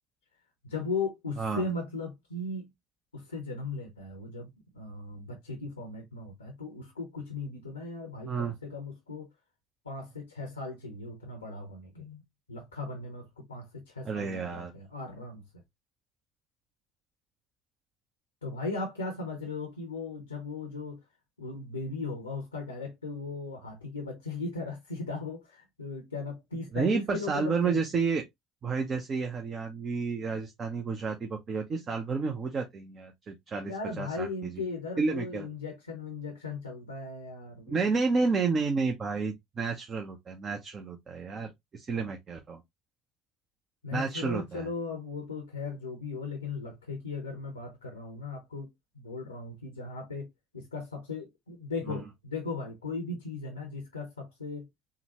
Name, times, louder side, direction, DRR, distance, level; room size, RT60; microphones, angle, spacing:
voice 1, 0.6-2.7 3.1-9.3 9.8-12.2 12.5-15.4 18.4-21.0 21.4-27.8 33.6-37.9 43.8-50.3 50.5-54.7, left 3 dB, 90° left, 0.7 m, -37 dB
voice 2, 14.0-14.7 26.7-28.2 28.6-34.5 35.0-35.5 37.7-42.6 43.9-44.7 51.9-52.0, right 4 dB, 35° right, 0.7 m, -31 dB
3.8 x 2.2 x 2.8 m
figure-of-eight pair, 60°, 0 cm